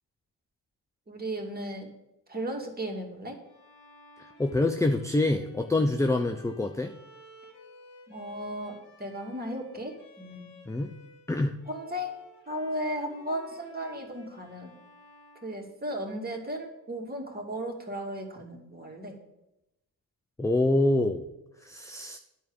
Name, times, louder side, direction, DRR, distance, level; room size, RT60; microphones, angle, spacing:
voice 1, 1.1-1.9 2.3-3.4 8.1-10.5 11.7-12.2 12.5-14.7 15.4-19.2, equal, 20° right, 1 dB, 2.5 m, -35 dB
Bowed string instrument, 3.4-11.3 11.6-16.4, left 2 dB, 70° left, 1.7 m, -55 dB
voice 2, 4.4-6.9 10.7-10.9 11.3-11.6 20.4-21.3 21.6-22.2, left 2 dB, 5° left, 6 dB, 0.6 m, -26 dB
10.5 x 4.7 x 6.9 m, 0.90 s
hypercardioid pair, 45°, 49 cm